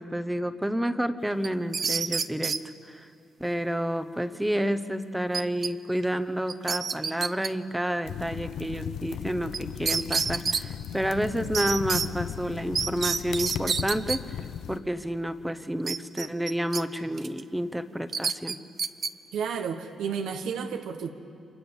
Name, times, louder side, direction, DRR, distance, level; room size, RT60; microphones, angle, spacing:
voice 1, 0.0-2.6 2.8-3.1 3.4-14.2 14.7-18.6, equal, 5° right, 11 dB, 0.9 m, -30 dB
sound 1, 1.4-2.6 5.3-5.7 6.0-6.1 6.5-7.5 9.5-9.6 9.9-10.6 11.5-12.1 12.7-14.2 15.9-16.8 17.2-17.4 18.1-19.1, right 5 dB, 40° right, 0.7 m, -28 dB
sound 2, 8.1-14.8, left 9 dB, 75° left, 0.7 m, -36 dB
voice 2, 19.3-21.1, right 6 dB, 85° right, 6 dB, 1.4 m, -31 dB
30.0 x 25.5 x 7.2 m, 2.6 s
cardioid pair, 145°, 0 cm